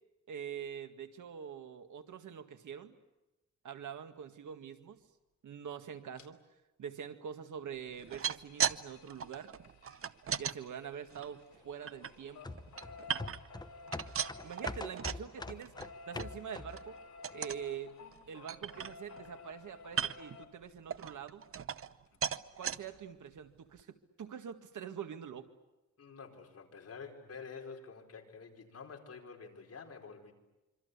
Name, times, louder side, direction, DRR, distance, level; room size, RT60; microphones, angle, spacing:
voice 1, 0.3-3.0 3.6-5.0 5.4-6.4 6.8-9.5 10.4-12.6 14.4-15.7 16.1-17.0 17.3-18.0 18.3-21.4 22.6-25.5, right 8 dB, 85° right, 7 dB, 2.0 m, -45 dB
sound 1, 6.2-6.3 7.9-11.4 11.7-20.5 22.1-22.2 22.5-22.6 22.9-23.0, left 4 dB, 70° left, 2.9 m, -53 dB
sound 2, 7.9-8.8 9.1-10.6 11.1-12.1 12.5-13.6 13.9-15.3 15.6-15.9 16.2-16.3 16.7-16.9 17.2-17.6 18.1-18.2 18.5-19.3 19.9-20.4 20.9-22.0 22.2-22.8 23.4-23.5 23.8-23.9, right 8 dB, 45° right, 0.8 m, -37 dB
sound 3, 12.4-16.9 17.3-17.4, left 2 dB, 15° left, 1.0 m, -44 dB
voice 2, 26.0-30.3, left 5 dB, 55° left, 2 dB, 4.9 m, -49 dB
26.0 x 25.5 x 8.3 m, 1.0 s
wide cardioid pair, 125°, 30 cm